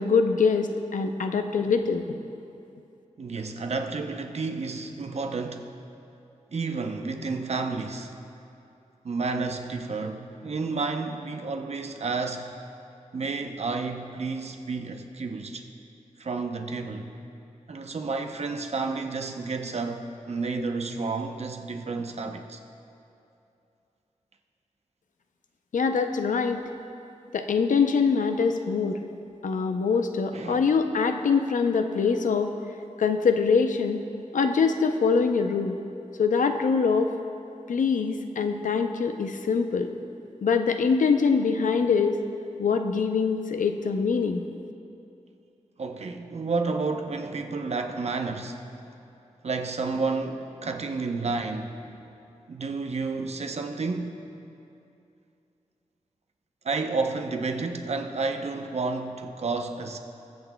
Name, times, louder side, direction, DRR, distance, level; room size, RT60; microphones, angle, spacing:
voice 1, 0.0-2.1 25.7-26.6 27.3-29.0 29.4-32.5 33.0-34.0 34.3-35.8 36.2-37.1 37.7-39.9 40.4-42.2 42.6-44.5, left 5 dB, 85° left, 6 dB, 0.6 m, -24 dB
voice 2, 3.2-5.7 6.5-8.1 9.0-12.5 13.1-15.7 16.2-17.1 17.7-22.6 30.3-30.7 45.8-48.6 49.4-52.1 52.5-54.2 56.6-60.0, right 4 dB, 55° right, 5 dB, 0.7 m, -31 dB
22.5 x 8.0 x 2.2 m, 2.7 s
wide cardioid pair, 115°, 13 cm